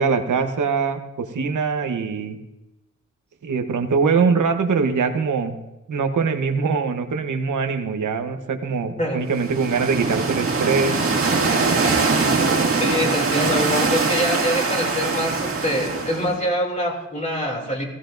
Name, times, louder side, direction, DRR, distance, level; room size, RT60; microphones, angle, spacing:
voice 1, 0.0-2.4 3.4-5.6 5.9-10.9, right 5 dB, 85° right, 6 dB, 1.1 m, -22 dB
voice 2, 8.9-9.2 12.0-12.1 12.7-17.8, equal, 25° left, -1 dB, 2.9 m, -25 dB
sound 1, 9.3-16.4, right 4 dB, 50° right, 1.9 m, -22 dB
16.0 x 15.0 x 2.6 m, 0.98 s
wide cardioid pair, 130°, 30 cm